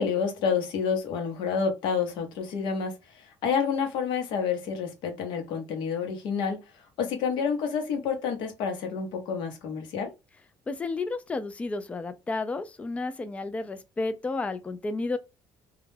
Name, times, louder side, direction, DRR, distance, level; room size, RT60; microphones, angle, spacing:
voice 1, 0.0-10.1, left 6 dB, 75° left, 0.8 m, -29 dB
voice 2, 10.7-15.2, left 3 dB, 15° left, 0.3 m, -32 dB
2.3 x 2.1 x 3.2 m
cardioid pair, 145°, 8 cm